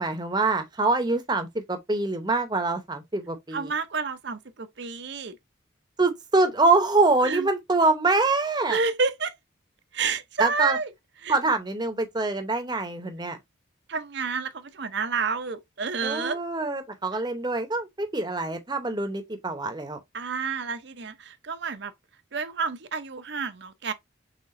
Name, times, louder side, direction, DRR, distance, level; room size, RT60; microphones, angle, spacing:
voice 1, 0.0-3.7 6.0-8.8 10.4-10.8 11.3-13.4 16.0-20.0, right 3 dB, 20° right, 0.8 m, -25 dB
voice 2, 3.5-5.4 7.2-7.5 8.7-9.3 9.9-10.9 11.2-11.4 13.9-16.4 20.1-21.9 22.3-23.9, right 5 dB, 55° right, 0.6 m, -29 dB
5.7 x 3.6 x 2.5 m
head